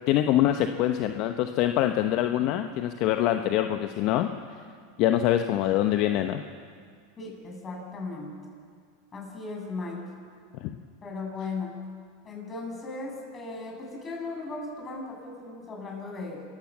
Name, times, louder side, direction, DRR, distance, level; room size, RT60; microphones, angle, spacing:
voice 1, 0.1-4.3 5.0-6.4 10.6-10.8, left 12 dB, 55° left, 7 dB, 0.9 m, -24 dB
voice 2, 7.2-8.3 9.1-10.0 11.0-11.8 12.2-16.4, left 3 dB, 25° left, 0 dB, 7.0 m, -37 dB
25.5 x 15.0 x 7.5 m, 2.1 s
supercardioid pair, 115°, 0 cm